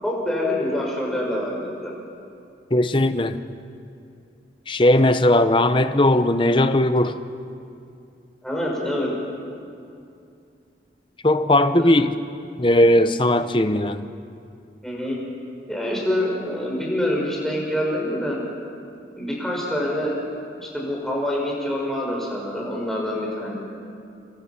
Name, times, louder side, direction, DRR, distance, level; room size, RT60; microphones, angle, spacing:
voice 1, 0.0-1.9 8.4-9.1 11.8-11.9 14.8-15.2 15.7-18.4 19.2-20.1 20.6-23.6, left 1 dB, ahead, -4 dB, 6.2 m, -26 dB
voice 2, 2.7-3.4 4.7-7.2 11.2-12.1 12.6-14.0, left 1 dB, 30° left, 10 dB, 0.9 m, -18 dB
28.0 x 27.5 x 6.0 m, 2.5 s
head